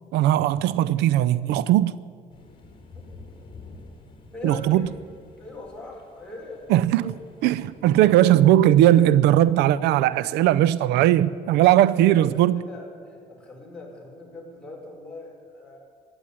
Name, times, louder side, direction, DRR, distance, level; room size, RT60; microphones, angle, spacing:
voice 1, 0.1-1.9 4.4-4.9 6.7-7.1 7.4-12.6, right 13 dB, 85° right, 0.5 m, -18 dB
sound 1, 2.3-7.8, left 3 dB, 30° left, 3.7 m, -48 dB
voice 2, 4.3-4.9 5.4-7.2 9.8-10.1 12.0-15.8, left 2 dB, 5° left, 4.9 m, -41 dB
15.0 x 9.1 x 9.9 m
cardioid pair, 110°, 17 cm